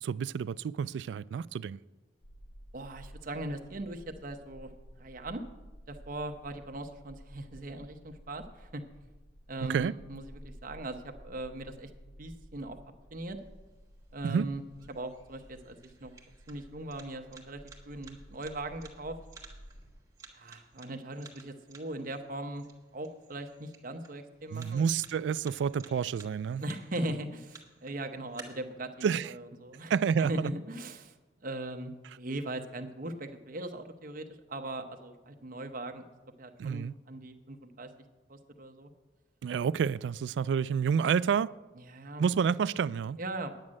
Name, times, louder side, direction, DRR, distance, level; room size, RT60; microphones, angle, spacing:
voice 1, 0.0-1.8 9.6-9.9 14.2-14.5 24.5-26.6 29.0-29.3 29.9-30.5 36.6-36.9 39.4-41.5 42.2-43.2, right 7 dB, 80° right, 0.3 m, -29 dB
sound 1, 2.2-20.0, equal, 65° left, 0.9 m, -53 dB
voice 2, 2.7-4.7 5.0-5.4 5.9-8.8 9.5-11.9 12.2-12.8 13.1-13.4 14.1-14.6 14.9-16.1 16.5-17.6 17.9-19.2 20.3-22.6 22.9-24.9 26.6-29.9 30.2-31.1 31.4-31.9 32.2-36.0 36.4-37.9 38.3-38.9 41.8-42.2 43.2-43.5, right 1 dB, 50° right, 0.9 m, -39 dB
sound 2, 13.4-28.4, right 4 dB, 20° right, 1.6 m, -56 dB
9.6 x 9.2 x 6.3 m
head